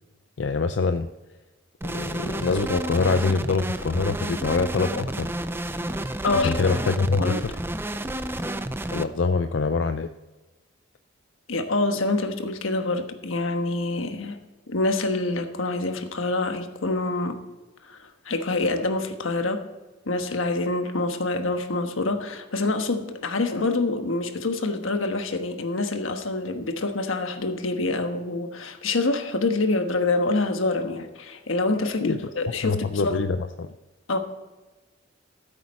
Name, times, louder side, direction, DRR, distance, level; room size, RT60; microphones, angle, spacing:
voice 1, 0.4-1.1 1.8-5.3 6.3-7.6 8.9-10.1 32.0-33.7, left 4 dB, 60° left, 9 dB, 0.4 m, -25 dB
sound 1, 1.8-9.0, right 1 dB, 10° right, 0.4 m, -30 dB
voice 2, 11.5-14.4 14.7-17.4 17.8-18.0 18.2-19.6 20.1-33.2 34.1-34.2, left 2 dB, 80° left, 6 dB, 1.3 m, -26 dB
14.0 x 8.2 x 4.3 m, 1.2 s
head